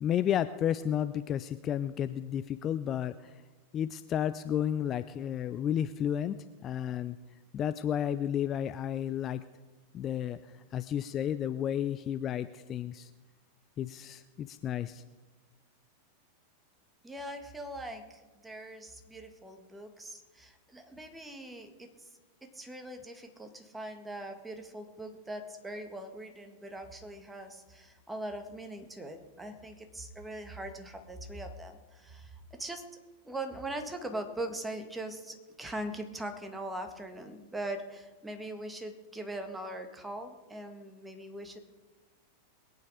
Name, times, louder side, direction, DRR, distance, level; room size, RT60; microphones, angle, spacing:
voice 1, 0.0-3.4 3.7-6.4 6.6-7.2 7.5-9.4 9.9-13.1 13.8-15.0, left 10 dB, 30° left, 12 dB, 0.5 m, -32 dB
voice 2, 17.0-22.1 22.4-32.8 33.2-41.6, right 1 dB, 10° right, 6 dB, 1.8 m, -41 dB
22.0 x 9.1 x 5.1 m, 1.2 s
figure-of-eight pair, 90°, 0 cm